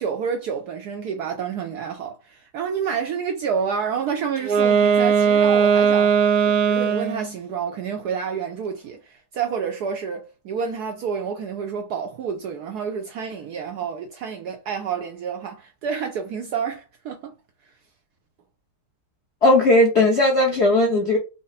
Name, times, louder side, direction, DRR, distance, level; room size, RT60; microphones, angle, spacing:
voice 1, 0.0-6.2 6.5-17.3, right 6 dB, 85° right, 0.8 m, -29 dB
Wind instrument woodwind instrument, 4.4-7.3, right 6 dB, 65° right, 1.0 m, -18 dB
voice 2, 19.4-21.2, left 2 dB, 50° left, 0.8 m, -17 dB
4.9 x 2.0 x 4.0 m
omnidirectional pair, 2.3 m